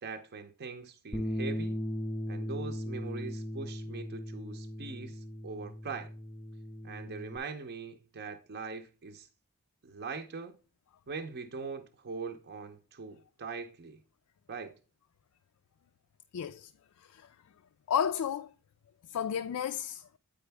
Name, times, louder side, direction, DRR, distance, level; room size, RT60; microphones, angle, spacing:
voice 1, 0.0-1.8 2.3-6.1 6.8-9.3 9.8-10.5 11.1-14.0 14.5-14.7, right 4 dB, 50° right, 0.6 m, -42 dB
Bass guitar, 1.1-7.4, equal, 5° left, 0.4 m, -38 dB
voice 2, 16.3-16.7 17.0-17.4 17.9-18.5 19.0-20.1, left 8 dB, 80° left, 0.4 m, -32 dB
8.7 x 4.9 x 3.4 m
head